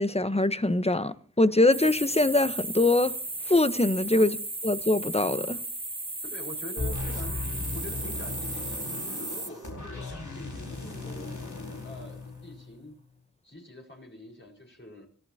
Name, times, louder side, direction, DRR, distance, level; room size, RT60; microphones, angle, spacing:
voice 1, 0.0-3.1 3.5-4.3 4.6-5.6, left 2 dB, 20° left, 1.0 m, -23 dB
sound 1, 1.7-9.5, right 2 dB, 15° right, 0.9 m, -35 dB
voice 2, 6.2-7.4 7.7-11.4 11.8-13.0 13.4-15.1, left 1 dB, 35° left, 5.0 m, -45 dB
sound 2, 6.8-12.9, left 3 dB, 60° left, 4.6 m, -37 dB
28.0 x 14.0 x 2.8 m
cardioid pair, 40°, 33 cm